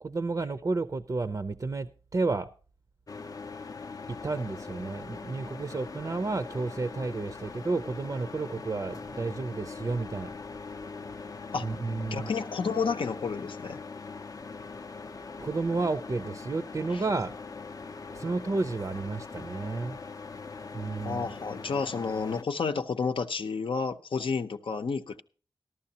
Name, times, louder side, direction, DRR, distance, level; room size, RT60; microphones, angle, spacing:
voice 1, 0.0-2.5 4.1-10.3 11.6-12.3 15.4-17.3 18.1-20.0 20.7-21.3, right 3 dB, 40° right, 0.5 m, -31 dB
sound 1, 3.1-22.4, left 4 dB, 45° left, 0.5 m, -42 dB
voice 2, 12.1-13.8 21.0-25.2, left 5 dB, 80° left, 0.7 m, -30 dB
14.0 x 12.5 x 2.8 m
wide cardioid pair, 95°, 9 cm